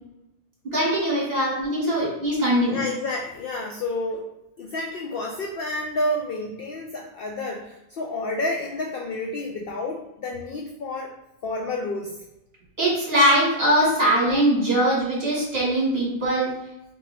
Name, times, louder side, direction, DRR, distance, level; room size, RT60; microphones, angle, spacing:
voice 1, 0.7-2.8 12.8-16.5, right 1 dB, 40° right, -6 dB, 1.9 m, -21 dB
voice 2, 2.7-4.3 4.6-11.1 11.4-12.2, left 2 dB, 75° left, 1 dB, 0.5 m, -30 dB
3.7 x 3.6 x 3.2 m, 0.87 s
omnidirectional pair, 1.5 m